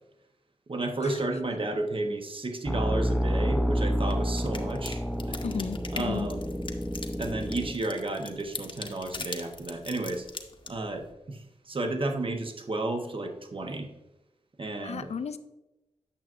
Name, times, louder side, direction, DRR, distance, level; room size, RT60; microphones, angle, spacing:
voice 1, 0.7-5.4 5.9-6.5 7.2-10.3 10.7-13.9 14.6-15.1, right 2 dB, 45° right, 5 dB, 1.0 m, -32 dB
sound 1, 2.7-7.7, equal, ahead, 0.6 m, -29 dB
sound 2, 4.1-11.1, left 3 dB, 45° left, 0.9 m, -42 dB
voice 2, 5.4-6.3 14.8-15.4, left 6 dB, 60° left, 11 dB, 0.5 m, -34 dB
8.6 x 6.0 x 2.5 m, 0.96 s
cardioid pair, 40°, 12 cm